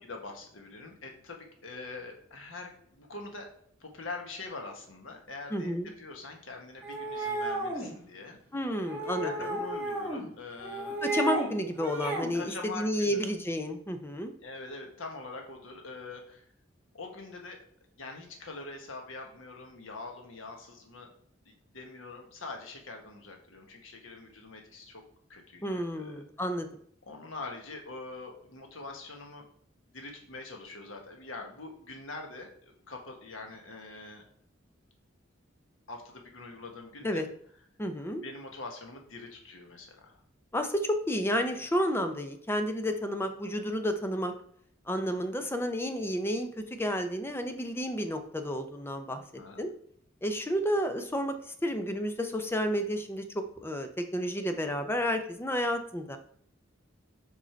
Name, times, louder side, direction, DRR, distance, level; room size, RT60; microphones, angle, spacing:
voice 1, 0.0-3.5 3.8-8.4 9.2-11.0 12.3-13.3 14.4-16.5 16.9-17.6 18.0-21.1 21.4-25.0 25.3-26.2 27.1-29.4 29.9-34.2 35.9-37.3 38.2-40.2 49.1-49.7, left 3 dB, 85° left, 2 dB, 1.4 m, -44 dB
voice 2, 5.5-5.9 8.5-9.6 11.0-14.3 25.6-26.7 37.0-37.3 37.8-38.2 40.5-44.3 44.9-49.2 49.6-49.7 50.2-56.2, equal, 10° left, 7 dB, 0.7 m, -31 dB
sound 1, 6.8-7.9 8.9-10.2 10.6-11.5 11.8-12.3, right 2 dB, 10° right, 1.8 m, -33 dB
5.4 x 4.9 x 4.5 m, 0.63 s
head